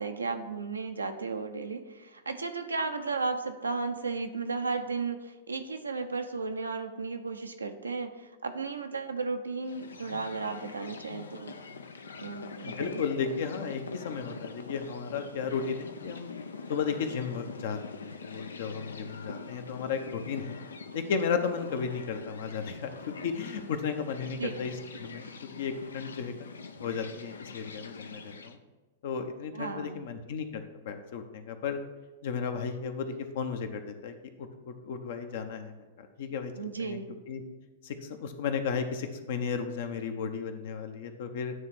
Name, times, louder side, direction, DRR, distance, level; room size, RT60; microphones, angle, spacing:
voice 1, 0.0-11.5 12.2-13.0 24.4-24.5 29.5-30.0 36.6-37.1, right 4 dB, 90° right, 6 dB, 0.7 m, -34 dB
sound 1, 9.6-28.6, left 4 dB, 80° left, 0.5 m, -44 dB
voice 2, 12.6-16.3 16.7-20.6 20.9-26.3 26.8-28.6 29.0-31.8 32.2-37.0 37.3-37.4 37.8-41.5, left 6 dB, 60° left, 7 dB, 0.9 m, -34 dB
9.3 x 3.3 x 6.1 m, 1.2 s
hypercardioid pair, 105°, 0 cm